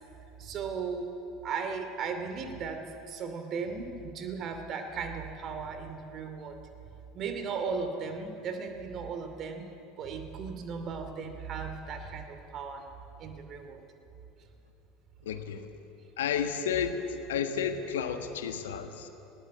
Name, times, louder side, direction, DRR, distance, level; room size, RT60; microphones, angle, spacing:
voice 1, 0.4-1.2 1.4-6.5 7.1-9.7 10.0-12.8 13.2-13.8, right 5 dB, 40° right, 7 dB, 2.6 m, -36 dB
voice 2, 15.2-15.6 16.2-19.1, left 7 dB, 65° left, 8 dB, 1.4 m, -32 dB
19.5 x 18.0 x 8.4 m, 2.9 s
figure-of-eight pair, 70°, 0 cm